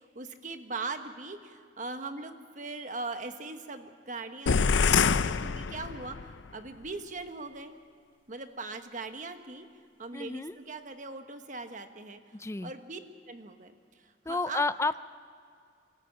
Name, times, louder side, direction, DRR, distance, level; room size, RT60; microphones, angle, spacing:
voice 1, 0.0-4.7 5.2-7.8 8.3-9.7 10.0-12.2 12.6-13.0 13.3-14.6, right 3 dB, 45° right, 7 dB, 1.3 m, -40 dB
sound 1, 4.5-6.3, left 5 dB, 85° left, 0.6 m, -25 dB
voice 2, 10.1-10.6 12.3-12.7 14.3-15.0, left 3 dB, 15° left, 13 dB, 0.4 m, -31 dB
26.0 x 13.5 x 8.8 m, 2.2 s
head